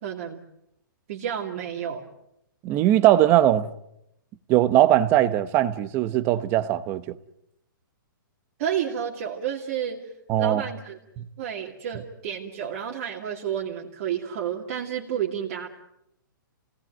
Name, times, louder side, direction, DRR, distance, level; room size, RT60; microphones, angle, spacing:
voice 1, 0.0-0.4 1.1-2.0 8.6-10.1 10.4-11.0 11.4-15.7, right 9 dB, 35° right, 2.7 m, -30 dB
voice 2, 2.6-3.7 4.5-7.0 10.3-10.6, right 13 dB, 20° right, 0.9 m, -20 dB
29.5 x 19.0 x 9.2 m
hypercardioid pair, 170°, 11 cm